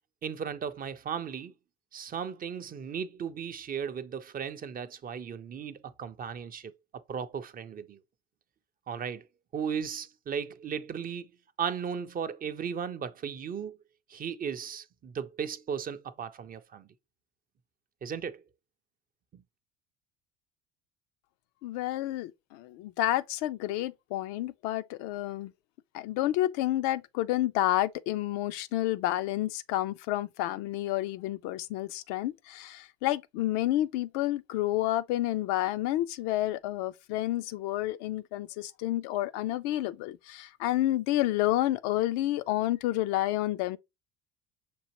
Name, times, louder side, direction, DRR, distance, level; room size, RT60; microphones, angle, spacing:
voice 1, 0.2-1.5 1.9-8.0 8.9-9.2 9.5-11.3 11.6-13.8 14.1-16.9 18.0-18.4 19.3-19.4, right 7 dB, 30° right, 0.5 m, -36 dB
voice 2, 21.6-25.5 25.9-43.8, left 15 dB, 65° left, 0.5 m, -30 dB
6.1 x 2.5 x 2.9 m
hypercardioid pair, 75°, 30 cm